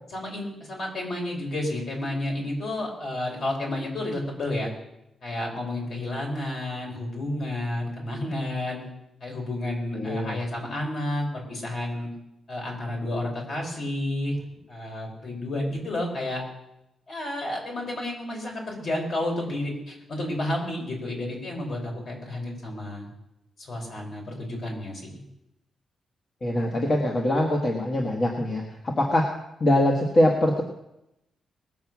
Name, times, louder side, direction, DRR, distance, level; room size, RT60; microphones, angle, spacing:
voice 1, 0.1-4.7 5.2-8.8 9.2-12.1 12.5-14.4 14.7-16.4 17.1-23.1 23.6-25.2, left 1 dB, 55° left, -1 dB, 4.7 m, -31 dB
voice 2, 9.9-10.4 26.4-29.3 29.6-30.6, left 1 dB, 35° left, 0 dB, 1.6 m, -23 dB
20.0 x 7.2 x 6.1 m, 0.88 s
wide cardioid pair, 140°, 0 cm